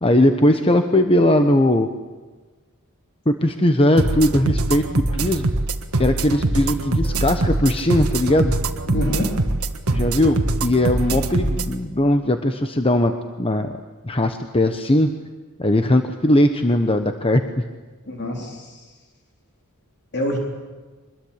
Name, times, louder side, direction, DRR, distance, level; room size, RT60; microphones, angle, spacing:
voice 1, 0.0-1.9 3.3-5.5 6.0-8.5 9.9-13.1 13.4-13.7 14.0-15.1 15.6-17.4, left 1 dB, 25° left, 7 dB, 1.1 m, -19 dB
sound 1, 4.0-11.7, right 2 dB, 70° right, 1.7 m, -23 dB
voice 2, 8.9-9.3 18.1-18.7 20.1-20.4, equal, 50° left, 1 dB, 3.9 m, -25 dB
24.5 x 21.5 x 8.8 m, 1.3 s
head